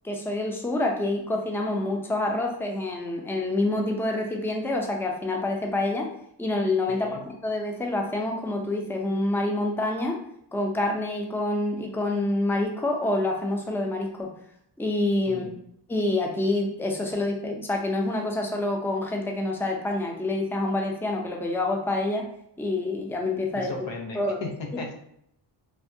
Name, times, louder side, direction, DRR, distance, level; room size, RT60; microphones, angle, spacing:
voice 1, 0.0-6.1 6.4-10.2 10.5-14.3 14.8-15.5 15.9-22.3 22.6-23.7 24.1-24.4, left 2 dB, 5° left, 1 dB, 0.4 m, -27 dB
voice 2, 6.9-7.2 15.3-15.6 23.5-24.9, left 3 dB, 90° left, 3 dB, 0.7 m, -36 dB
3.3 x 2.2 x 2.6 m, 0.72 s
cardioid pair, 85°, 44 cm